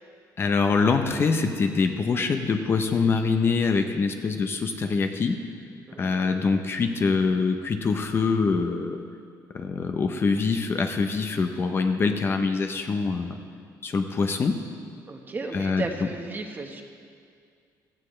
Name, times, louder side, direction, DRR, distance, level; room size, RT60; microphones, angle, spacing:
voice 1, 0.4-5.4 6.0-9.0 9.5-13.4 13.8-14.6 15.5-15.8, left 4 dB, 35° left, 5 dB, 0.7 m, -24 dB
voice 2, 5.9-6.5 15.1-16.8, right 3 dB, 25° right, 3 dB, 1.1 m, -35 dB
16.0 x 14.0 x 3.2 m, 2.2 s
cardioid pair, 140°, 7 cm